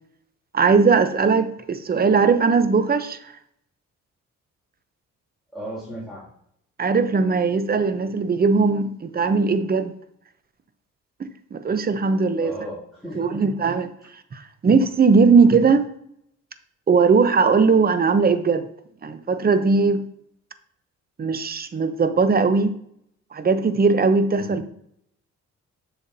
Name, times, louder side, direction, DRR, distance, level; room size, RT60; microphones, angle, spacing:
voice 1, 0.5-3.2 6.8-9.9 11.2-12.5 13.2-13.9 14.3-15.8 16.9-18.7 19.0-20.0 21.2-22.7 23.3-24.7, right 4 dB, 30° right, 0.8 m, -19 dB
voice 2, 5.5-6.3 12.4-13.4 24.4-24.7, right 1 dB, ahead, 2.5 m, -35 dB
7.1 x 7.0 x 2.7 m
cardioid pair, 90°, 30 cm